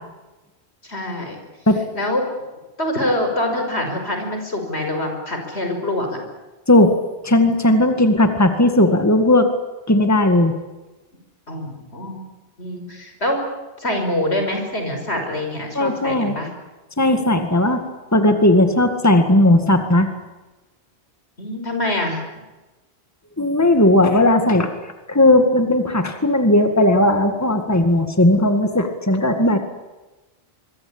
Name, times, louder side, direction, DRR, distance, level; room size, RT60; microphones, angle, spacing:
voice 1, 0.8-1.4 1.9-2.2 2.8-6.2 11.5-12.2 12.6-13.4 13.8-16.5 21.4-22.2, left 1 dB, 80° left, 4 dB, 6.0 m, -25 dB
voice 2, 7.2-9.5 9.9-10.5 15.7-16.4 17.0-17.8 18.1-20.1 23.4-24.7 25.1-29.6, left 1 dB, 15° left, 6 dB, 2.1 m, -16 dB
25.5 x 23.5 x 8.9 m, 1.1 s
omnidirectional pair, 1.1 m